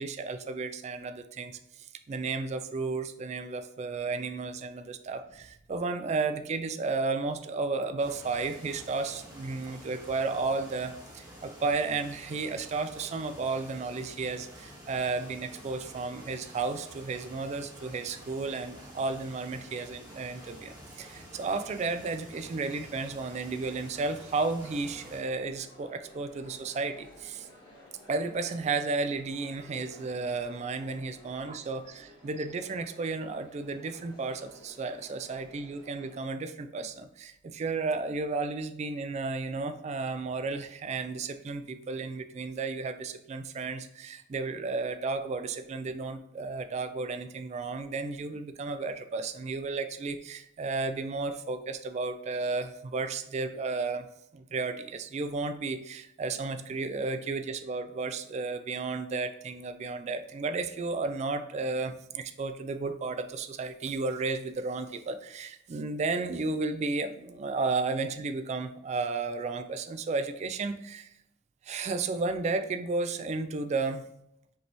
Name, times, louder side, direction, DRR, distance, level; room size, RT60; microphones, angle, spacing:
voice 1, 0.0-27.5 28.1-54.1 54.3-71.1 71.6-74.1, right 3 dB, 35° right, 9 dB, 0.3 m, -33 dB
sound 1, 8.0-25.2, equal, 20° right, 1.5 m, -49 dB
sound 2, 24.0-36.2, left 1 dB, 25° left, 1.5 m, -54 dB
5.2 x 3.3 x 2.9 m, 0.77 s
head